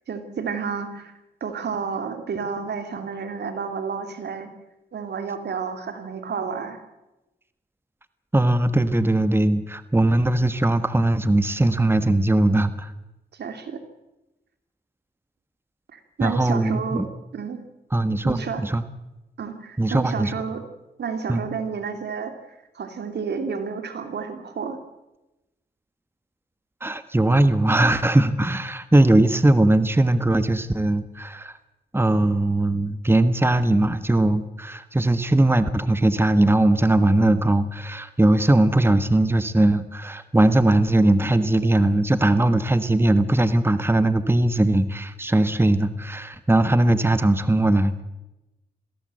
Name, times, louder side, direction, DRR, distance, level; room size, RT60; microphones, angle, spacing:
voice 1, 0.1-1.1 1.4-4.5 4.9-6.8 13.3-13.8 15.9-17.0 17.3-17.6 18.2-18.6 19.4-20.6 21.0-24.8, right 6 dB, 75° right, 7 dB, 2.8 m, -31 dB
voice 2, 8.3-12.9 16.2-17.1 17.9-18.8 19.8-20.3 21.3-21.4 26.8-31.6 31.9-48.0, right 1 dB, 15° right, 12 dB, 1.4 m, -20 dB
22.0 x 16.0 x 7.8 m, 0.97 s
cardioid pair, 55°, 17 cm